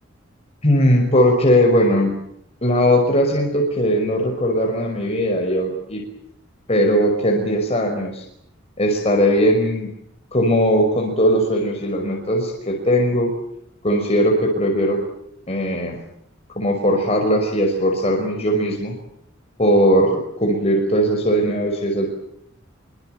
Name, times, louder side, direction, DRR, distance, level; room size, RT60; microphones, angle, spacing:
voice 1, 0.6-2.1 2.6-6.0 6.7-8.2 8.8-9.9 10.3-13.3 13.8-15.0 15.5-16.0 16.6-18.9 19.6-22.1, equal, 30° left, 2 dB, 5.5 m, -19 dB
26.5 x 25.5 x 7.9 m, 0.72 s
head